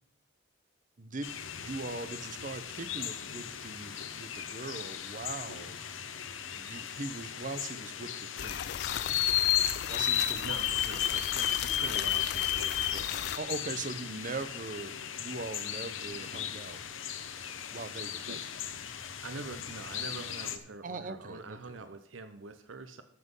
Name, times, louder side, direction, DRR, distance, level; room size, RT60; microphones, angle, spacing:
voice 1, 1.0-1.3 1.6-5.7 6.5-8.7 9.9-10.5 13.1-16.8 17.3-18.4 20.8-21.8, right 3 dB, 45° right, 12 dB, 0.8 m, -41 dB
sound 1, 1.2-20.6, left 10 dB, 85° left, 0.9 m, -35 dB
sound 2, 8.4-13.4, left 10 dB, 60° left, 0.4 m, -37 dB
voice 2, 10.4-13.3 18.3-18.4 19.2-23.0, right 3 dB, 80° right, 9 dB, 0.8 m, -45 dB
13.5 x 6.0 x 5.5 m, 0.67 s
head